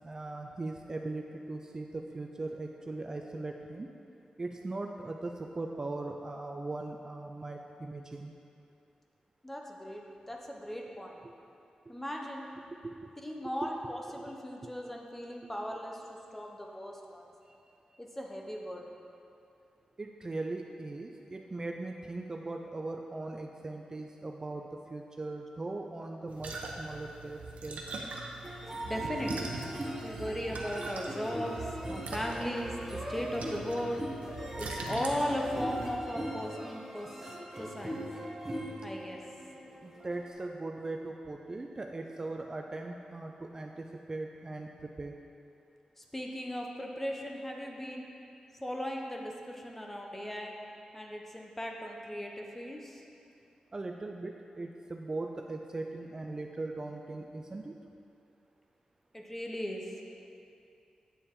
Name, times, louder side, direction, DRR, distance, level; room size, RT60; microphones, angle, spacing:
voice 1, 0.0-3.9 4.4-8.3 11.9-12.0 12.8-13.1 13.8-14.3 14.6-14.7 17.4-17.5 20.0-27.8 39.8-45.2 53.7-57.7, right 2 dB, 30° right, 2 dB, 0.4 m, -39 dB
voice 2, 9.4-11.2 11.9-12.5 13.2-16.0 16.3-17.2 18.0-18.9 28.9-29.5 30.0-34.0 34.5-37.1 37.6-38.0 38.8-39.2 46.0-48.1 48.6-50.5 50.9-53.0 59.1-59.8, equal, 10° left, 0 dB, 0.8 m, -37 dB
sound 1, 26.3-36.0, right 3 dB, 80° right, 0.8 m, -42 dB
sound 2, 28.4-40.3, equal, 10° right, 1.0 m, -40 dB
8.6 x 6.9 x 3.7 m, 2.6 s
wide cardioid pair, 110°, 2 cm